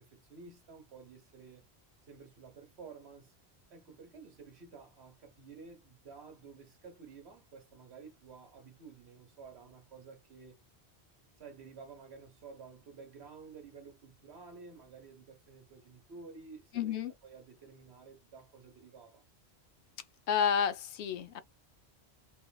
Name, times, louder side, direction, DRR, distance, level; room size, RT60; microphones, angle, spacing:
voice 1, 0.0-1.7 2.0-3.3 3.7-10.6 11.4-16.9 17.2-19.3, right 5 dB, 75° right, 1.3 m, -52 dB
voice 2, 16.7-17.1 20.3-21.4, left 8 dB, 85° left, 0.9 m, -30 dB
3.1 x 3.0 x 2.2 m
omnidirectional pair, 1.1 m